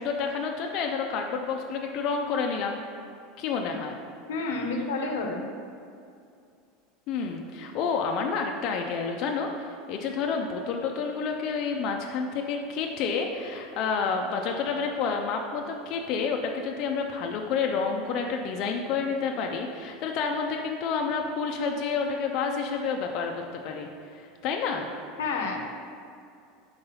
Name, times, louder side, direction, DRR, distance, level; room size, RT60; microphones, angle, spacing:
voice 1, 0.0-2.8 3.4-4.0 7.1-23.3 23.6-23.9 24.1-24.9, left 5 dB, 55° left, 2 dB, 0.5 m, -29 dB
voice 2, 4.3-5.4 25.2-25.7, left 3 dB, 85° left, 3 dB, 0.7 m, -29 dB
4.8 x 3.9 x 5.5 m, 2.4 s
supercardioid pair, 115°, 0 cm